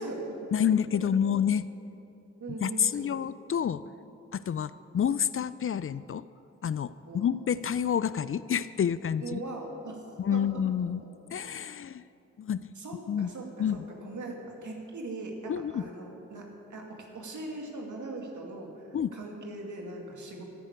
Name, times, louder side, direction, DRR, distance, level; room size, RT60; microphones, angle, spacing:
voice 1, 0.0-0.5 2.4-3.1 7.1-7.3 9.2-10.0 10.3-10.4 12.8-20.4, right 2 dB, 75° right, 0 dB, 2.3 m, -40 dB
voice 2, 0.5-1.6 2.6-3.9 4.3-6.3 6.6-9.4 10.2-11.0 11.3-12.0 12.4-12.7 13.1-13.3 13.6-13.9 15.5-15.8 18.9-19.1, left 8 dB, 45° left, 16 dB, 0.4 m, -28 dB
13.5 x 6.4 x 9.5 m, 2.9 s
supercardioid pair, 40°, 30 cm